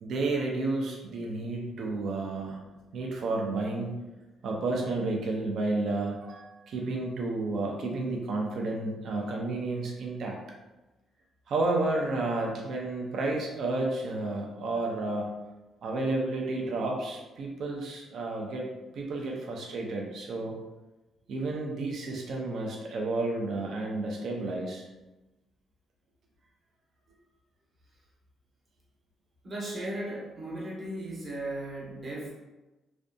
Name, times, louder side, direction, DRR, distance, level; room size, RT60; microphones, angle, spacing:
voice 1, 0.0-2.6 2.9-4.0 4.4-10.4 11.5-15.3 15.8-18.7 18.9-20.5 21.3-24.9, right 2 dB, 65° right, 0 dB, 0.4 m, -31 dB
voice 2, 29.4-32.3, right 1 dB, 40° right, -4 dB, 0.9 m, -36 dB
2.5 x 2.2 x 2.5 m, 1.1 s
cardioid pair, 90°, 0 cm